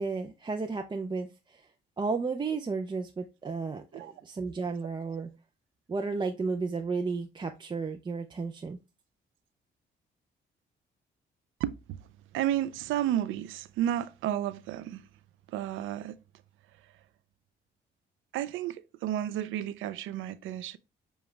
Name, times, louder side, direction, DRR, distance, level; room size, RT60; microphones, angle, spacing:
voice 1, 0.0-1.7 2.0-5.3 5.9-8.8, right 4 dB, 25° right, 0.5 m, -33 dB
voice 2, 11.6-12.0 12.3-15.0 15.5-16.2 18.3-20.8, right 11 dB, 85° right, 0.5 m, -32 dB
7.0 x 2.4 x 3.1 m
cardioid pair, 90°, 20 cm